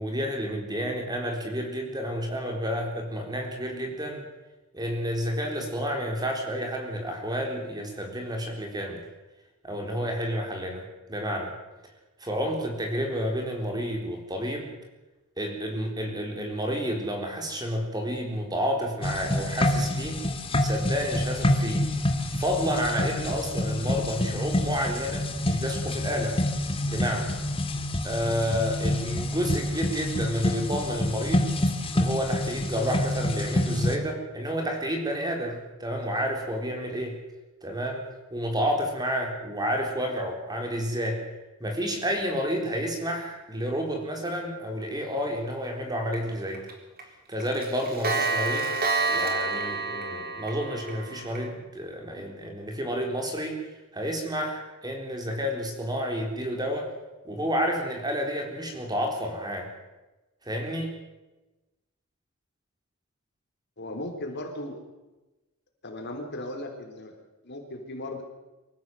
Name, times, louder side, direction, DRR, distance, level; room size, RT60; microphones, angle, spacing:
voice 1, 0.0-4.2 4.7-9.0 9.6-11.5 12.2-14.7 15.4-20.2 20.6-21.9 22.3-26.4 26.9-27.4 28.0-31.5 31.9-37.2 37.6-38.0 38.3-41.2 41.6-46.7 47.3-48.7 49.1-53.6 53.9-56.9 57.2-59.7 60.4-60.9, equal, 20° right, 2 dB, 4.0 m, -30 dB
sound 1, 19.0-34.0, left 1 dB, 25° left, 2.0 m, -27 dB
Clock, 46.1-46.2 46.5-46.7 47.0-47.1 47.4-51.4, right 3 dB, 45° right, 4.0 m, -28 dB
voice 2, 63.8-64.8 65.8-67.2 67.4-68.2, left 1 dB, 50° left, 3 dB, 4.1 m, -36 dB
24.5 x 15.5 x 7.9 m, 1.1 s
head